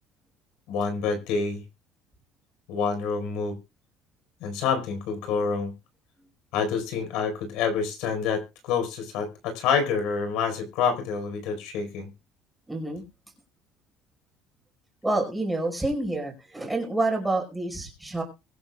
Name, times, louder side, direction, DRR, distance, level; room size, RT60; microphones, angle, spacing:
voice 1, 0.7-1.6 2.7-3.6 4.4-5.7 6.5-12.1, left 6 dB, 75° left, 6 dB, 4.6 m, -27 dB
voice 2, 12.7-13.0 15.0-18.2, right 2 dB, 5° right, 1 dB, 4.7 m, -28 dB
23.5 x 8.0 x 2.4 m, 0.28 s
cardioid pair, 165°, 0 cm